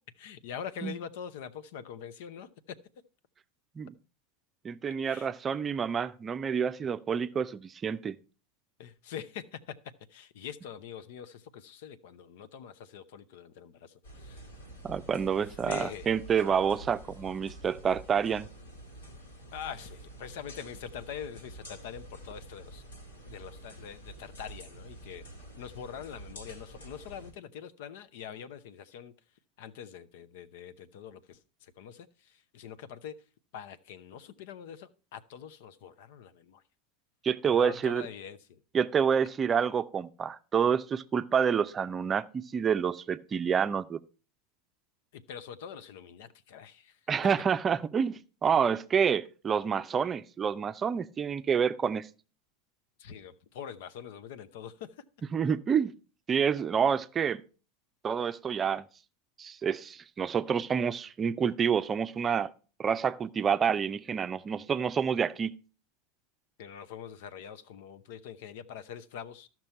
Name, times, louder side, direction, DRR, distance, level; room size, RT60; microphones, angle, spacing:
voice 1, 0.2-2.8 5.0-5.3 8.8-9.8 10.1-14.5 15.6-16.1 19.5-22.8 23.2-25.2 25.6-29.1 29.6-33.1 33.5-36.6 37.5-38.6 45.1-47.0 53.0-55.0 66.6-69.5, left 8 dB, 65° left, 0.7 m, -44 dB
voice 2, 4.6-8.2 14.8-18.5 37.2-38.0 38.7-44.0 47.1-52.1 55.3-55.9 56.3-57.4 58.0-58.8 59.4-62.5 62.8-65.5, right 7 dB, 30° right, 0.6 m, -28 dB
sound 1, 14.0-27.3, right 1 dB, 85° left, 2.4 m, -48 dB
13.5 x 6.0 x 4.4 m
hypercardioid pair, 90°, 0 cm